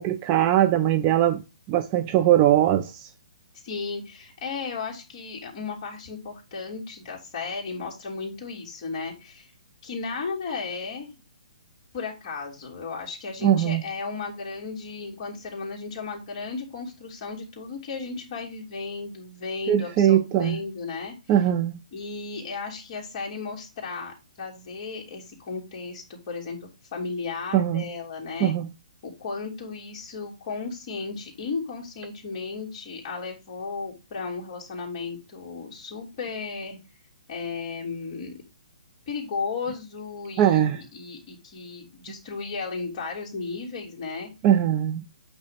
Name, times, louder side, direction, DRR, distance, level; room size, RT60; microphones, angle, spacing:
voice 1, 0.0-1.4 1.7-3.1 13.4-13.8 19.7-20.6 21.3-21.8 27.5-27.8 28.4-28.7 40.4-40.8 44.4-45.0, right 11 dB, 25° right, 0.5 m, -21 dB
voice 2, 3.6-9.5 9.8-11.1 11.9-21.1 21.9-28.5 29.0-36.8 37.3-38.4 39.1-44.3, left 4 dB, 30° left, 2.9 m, -35 dB
8.6 x 3.0 x 5.7 m
hypercardioid pair, 155°, 4 cm